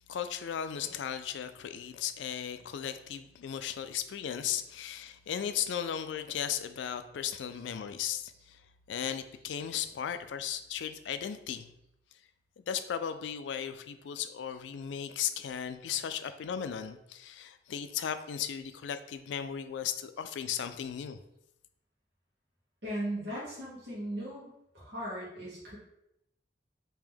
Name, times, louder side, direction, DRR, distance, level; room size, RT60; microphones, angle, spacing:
voice 1, 0.1-8.6 8.9-11.7 12.6-21.2, left 8 dB, 85° left, 10 dB, 0.3 m, -36 dB
voice 2, 22.8-25.8, right 1 dB, 65° right, -7 dB, 1.2 m, -38 dB
3.6 x 2.8 x 3.4 m, 0.81 s
head